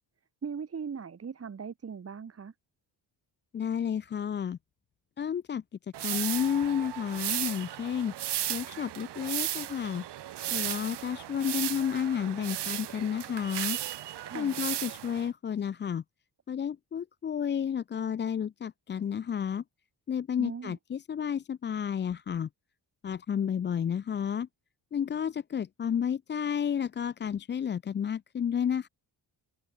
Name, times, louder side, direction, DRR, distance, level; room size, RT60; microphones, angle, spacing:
voice 1, 0.4-2.5 14.2-14.6 20.4-20.8, right 6 dB, 35° right, 5.0 m, -39 dB
voice 2, 3.5-4.6 5.2-5.6 6.0-8.1 8.5-10.0 10.5-13.8 14.3-16.0 16.5-19.6 20.1-22.5 23.0-24.5 24.9-28.9, left 8 dB, 30° left, 0.4 m, -31 dB
sound 1, 5.9-15.3, right 12 dB, 80° right, 2.0 m, -35 dB
wide cardioid pair, 175°, 41 cm